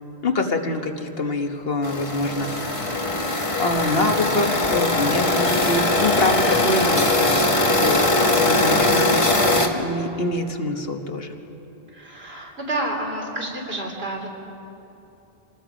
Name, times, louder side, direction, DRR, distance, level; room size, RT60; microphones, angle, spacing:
voice 1, 0.2-3.0 3.6-7.5 7.8-9.3 9.7-11.4, left 2 dB, 65° left, 4 dB, 1.5 m, -25 dB
sound 1, 1.8-9.7, left 2 dB, 30° left, 1.4 m, -20 dB
voice 2, 8.5-8.9 11.9-14.3, right 1 dB, 75° right, -1 dB, 3.5 m, -30 dB
27.0 x 19.5 x 5.1 m, 2.9 s
omnidirectional pair, 1.1 m